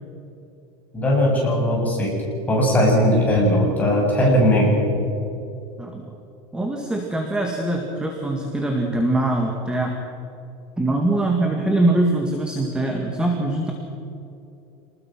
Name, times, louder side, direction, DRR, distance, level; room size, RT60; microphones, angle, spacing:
voice 1, 0.9-2.2 2.5-5.0, equal, 10° left, -4 dB, 7.9 m, -18 dB
voice 2, 6.5-10.0 10.8-13.7, right 2 dB, 5° right, 1 dB, 1.9 m, -22 dB
28.0 x 20.5 x 6.1 m, 2.7 s
cardioid pair, 165°, 13 cm